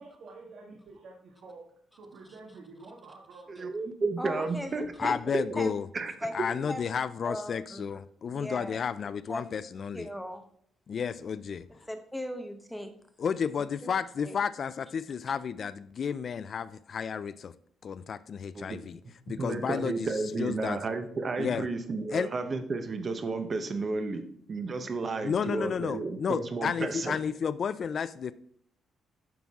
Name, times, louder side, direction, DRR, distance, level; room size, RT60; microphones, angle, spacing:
voice 1, 0.0-1.7 2.0-3.7, right 3 dB, 60° right, 0 dB, 1.5 m, -49 dB
voice 2, 3.5-5.6 5.9-6.1 18.5-18.8 19.3-24.2 24.5-27.2, right 3 dB, 35° right, 8 dB, 0.9 m, -32 dB
voice 3, 4.2-5.2 5.6-5.7 6.2-6.3 6.7-6.8 7.2-8.0 8.3-8.8 9.3-9.4 9.9-10.4 11.8-12.9 13.8-13.9 14.2-14.4, left 1 dB, ahead, 6 dB, 0.9 m, -37 dB
voice 4, 5.0-5.9 6.3-10.1 10.9-11.7 13.2-17.5 17.8-19.0 19.3-20.1 20.4-20.8 21.4-21.7 22.1-22.3 25.2-28.3, left 7 dB, 45° left, 14 dB, 0.3 m, -32 dB
9.3 x 5.9 x 3.6 m, 0.65 s
cardioid pair, 140°, 0 cm